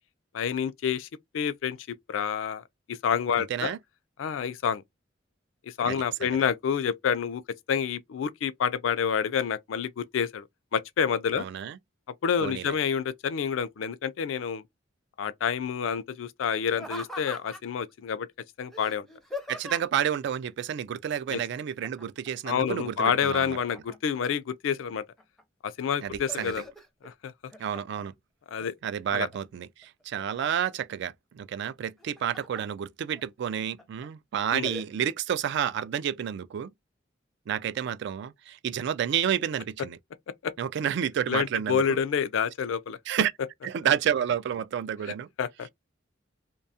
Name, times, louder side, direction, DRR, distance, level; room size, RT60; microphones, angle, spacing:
voice 1, 0.3-1.1 1.3-1.8 2.1-3.7 4.2-4.8 5.7-7.4 7.7-10.4 10.7-11.5 12.2-14.6 15.2-18.3 18.6-19.1 21.3-21.4 22.5-25.0 25.6-26.6 27.0-27.3 28.5-28.7 29.1-29.3 34.5-34.7 40.4-40.5 41.3-43.0 45.4-45.7, left 7 dB, 85° left, 0.3 m, -28 dB
voice 2, 11.4-11.8 12.4-12.7 19.5-23.6 26.0-26.5 27.6-28.1 28.8-36.7 37.5-40.0 40.6-42.0 43.1-43.3 43.6-45.3, right 9 dB, 65° right, 0.3 m, -30 dB
Laughter, 16.7-17.8 18.7-20.1 21.8-22.3 22.6-24.2 24.8-25.4 25.8-27.1 27.5-28.1 28.6-29.4 29.8-30.7 31.8-32.6 33.2-33.3 33.8-34.1 34.6-34.9, left 1 dB, ahead, 0.5 m, -42 dB
2.7 x 2.2 x 2.6 m
head